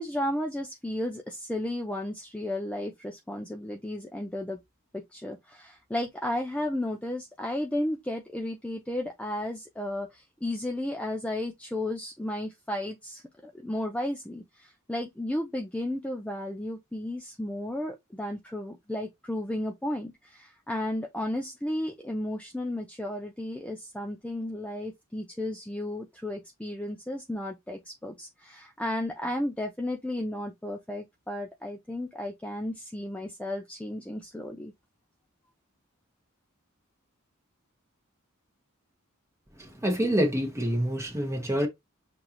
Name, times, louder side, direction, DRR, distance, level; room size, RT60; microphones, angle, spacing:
voice 1, 0.0-4.6 4.9-34.7, left 1 dB, 5° left, 0.4 m, -33 dB
voice 2, 39.6-41.7, equal, 15° right, 1.2 m, -27 dB
6.5 x 2.5 x 2.9 m
head